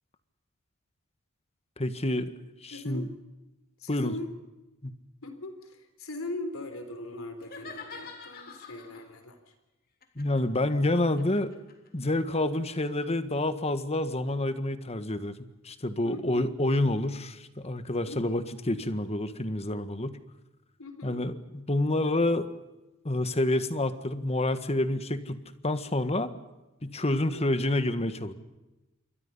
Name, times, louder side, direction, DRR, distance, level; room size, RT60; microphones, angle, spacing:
voice 1, 1.8-2.3 2.6-3.1 3.9-4.1 4.8-4.9 10.1-11.5 11.9-15.4 15.6-20.2 21.0-22.5 23.0-26.3 26.8-28.3, left 1 dB, 30° left, 11 dB, 1.6 m, -28 dB
voice 2, 2.7-3.1 3.8-4.3 5.2-9.5 16.0-16.5 18.1-18.4 20.8-21.2 27.1-27.4, left 2 dB, 75° left, 8 dB, 3.6 m, -40 dB
sound 1, 7.4-9.1 10.0-13.1, left 4 dB, 45° left, 3.4 m, -47 dB
28.0 x 23.0 x 5.6 m, 1.0 s
head